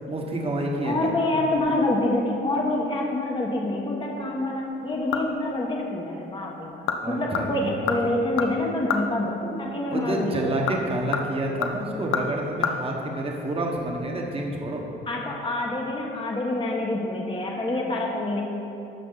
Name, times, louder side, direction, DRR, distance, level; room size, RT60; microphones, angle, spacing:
voice 1, 0.1-1.1 7.0-8.1 9.9-14.8, right 1 dB, 30° right, 0 dB, 1.3 m, -29 dB
voice 2, 0.8-10.6 15.1-18.4, left 2 dB, 25° left, -1 dB, 1.1 m, -27 dB
sound 1, 4.6-5.5 5.9-6.0 6.6-7.0 7.3-9.1 10.4-12.7 13.0-13.1, left 6 dB, 80° left, 0.7 m, -29 dB
12.0 x 6.1 x 4.0 m, 2.9 s
cardioid pair, 90°, 20 cm